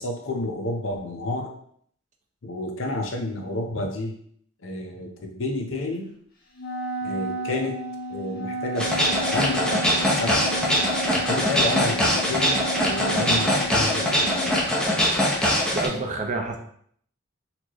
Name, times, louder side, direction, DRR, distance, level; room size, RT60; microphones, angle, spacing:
voice 1, 0.0-1.5 2.4-4.2 4.6-6.1 7.0-7.8 8.1-9.8 10.1-10.5 11.1-15.0, left 2 dB, 85° left, 3 dB, 0.7 m, -30 dB
Wind instrument woodwind instrument, 6.6-14.7, right 2 dB, 50° left, 1.1 m, -33 dB
sound 1, 8.8-15.9, equal, 5° left, 0.7 m, -22 dB
voice 2, 15.7-16.6, right 3 dB, 40° right, 3 dB, 0.6 m, -28 dB
4.2 x 3.0 x 3.0 m, 0.63 s
head